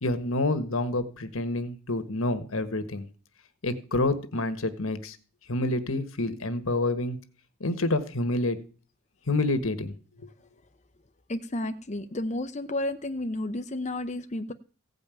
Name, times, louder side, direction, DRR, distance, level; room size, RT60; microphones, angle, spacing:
voice 1, 0.0-3.1 3.6-5.2 5.5-7.2 7.6-8.6 9.3-9.9, left 2 dB, 75° left, 11 dB, 1.5 m, -28 dB
voice 2, 11.3-14.5, left 1 dB, 30° left, 8 dB, 0.7 m, -32 dB
16.5 x 5.4 x 9.1 m, 0.39 s
head